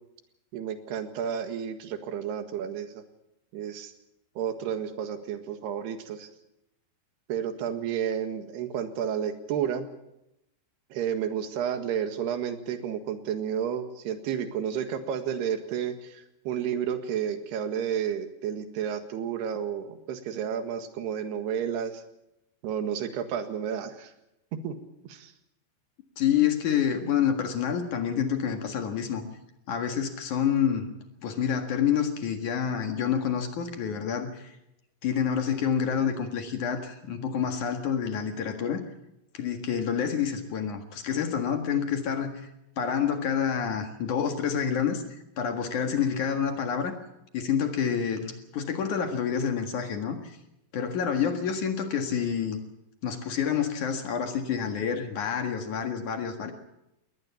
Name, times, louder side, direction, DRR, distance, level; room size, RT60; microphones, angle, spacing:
voice 1, 0.5-3.0 3.5-3.9 4.4-6.3 7.3-9.9 10.9-22.0 22.6-24.1 24.5-24.8 25.0-25.3, right 8 dB, 70° right, 8 dB, 3.7 m, -31 dB
voice 2, 26.2-29.2 29.7-30.9 31.2-34.5 35.0-38.8 39.3-42.3 42.8-45.0 45.4-46.9 47.3-50.4 50.7-52.6 53.0-56.5, left 8 dB, 55° left, 5 dB, 2.7 m, -28 dB
21.0 x 19.0 x 7.1 m, 0.86 s
omnidirectional pair, 5.1 m